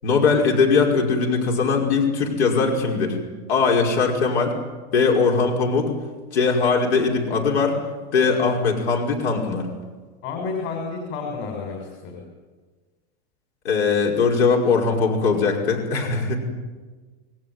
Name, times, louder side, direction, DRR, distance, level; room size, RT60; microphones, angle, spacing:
voice 1, 0.0-3.2 3.5-4.5 4.9-5.9 6.3-7.8 8.1-9.7 13.6-16.4, left 4 dB, 85° left, 0 dB, 5.4 m, -20 dB
voice 2, 10.2-12.2 16.0-16.4, left 4 dB, 55° left, 2 dB, 6.3 m, -31 dB
28.0 x 19.0 x 9.5 m, 1.4 s
supercardioid pair, 135°, 32 cm